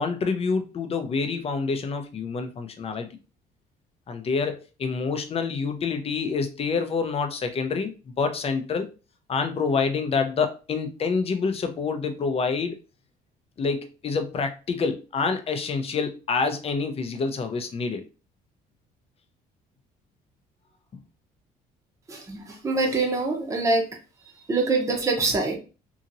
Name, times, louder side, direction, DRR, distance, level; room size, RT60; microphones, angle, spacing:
voice 1, 0.0-3.1 4.1-8.9 9.3-12.8 13.6-18.0, left 5 dB, 35° left, 7 dB, 0.6 m, -27 dB
voice 2, 22.1-23.9 24.5-25.6, right 3 dB, 20° right, 1 dB, 0.8 m, -24 dB
2.8 x 2.7 x 2.6 m, 0.32 s
cardioid pair, 110°, 17 cm